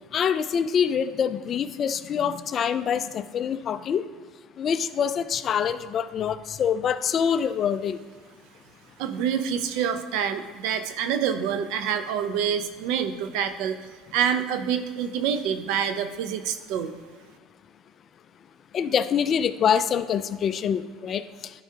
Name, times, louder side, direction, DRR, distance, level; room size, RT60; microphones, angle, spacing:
voice 1, 0.1-4.1 4.6-8.0 18.7-21.2, left 7 dB, 40° left, 12 dB, 0.4 m, -25 dB
voice 2, 9.0-13.8 14.1-16.9, right 8 dB, 75° right, 9 dB, 0.6 m, -27 dB
11.0 x 4.7 x 2.8 m, 1.5 s
supercardioid pair, 110°, 0 cm